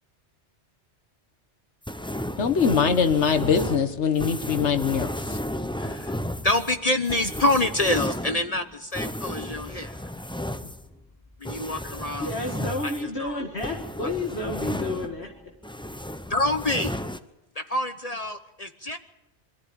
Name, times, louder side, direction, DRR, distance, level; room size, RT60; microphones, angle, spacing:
sound 1, 1.8-15.4 15.6-17.2, left 1 dB, 5° left, 0.6 m, -33 dB
voice 1, 2.4-5.4, left 6 dB, 85° left, 10 dB, 1.6 m, -22 dB
voice 2, 5.8-6.2 6.4-10.0 10.6-10.7 11.4-12.3 12.8-13.4 16.3-17.0 17.5-19.0, left 1 dB, 35° left, 8 dB, 1.0 m, -27 dB
voice 3, 12.0-15.3, left 2 dB, 70° left, 1 dB, 2.2 m, -31 dB
22.5 x 14.0 x 8.7 m, 0.96 s
omnidirectional pair, 1.1 m